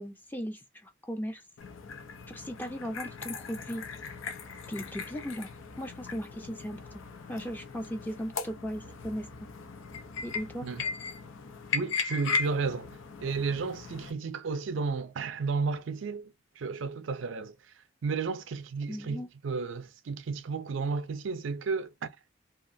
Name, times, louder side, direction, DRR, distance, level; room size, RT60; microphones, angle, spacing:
voice 1, 0.0-1.4 2.3-3.8 4.7-5.5 5.8-7.0 7.3-9.3 10.2-10.7 18.9-19.3, equal, 10° left, 0.4 m, -37 dB
sound 1, 1.6-14.1, left 5 dB, 90° left, 0.6 m, -38 dB
voice 2, 11.7-17.5 18.0-22.1, right 4 dB, 75° right, 0.4 m, -33 dB
2.8 x 2.4 x 2.6 m
head